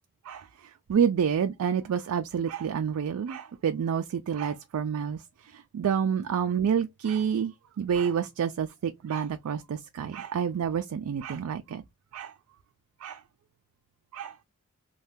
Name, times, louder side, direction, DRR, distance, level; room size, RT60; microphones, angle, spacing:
voice 1, 0.2-11.8 12.1-12.3 13.0-13.2 14.1-14.3, right 7 dB, 75° right, 0.3 m, -29 dB
2.6 x 2.2 x 3.4 m
head